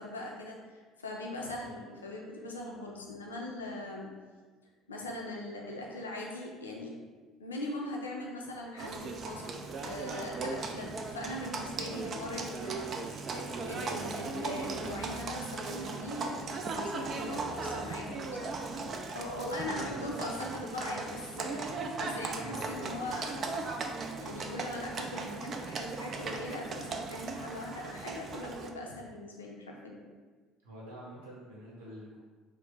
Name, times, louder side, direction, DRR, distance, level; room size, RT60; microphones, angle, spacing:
voice 1, 0.0-4.1 4.9-6.9 7.4-9.5 9.8-18.5 19.1-23.6 24.2-30.0, left 1 dB, 90° left, -1 dB, 0.4 m, -40 dB
Livestock farm animals working animals, 8.8-28.7, right 3 dB, 45° right, 0.3 m, -38 dB
voice 2, 19.5-20.0 22.4-22.6 30.6-32.2, right 1 dB, 75° right, -5 dB, 1.0 m, -47 dB
3.1 x 2.1 x 3.4 m, 1.4 s
hypercardioid pair, 60°, 0 cm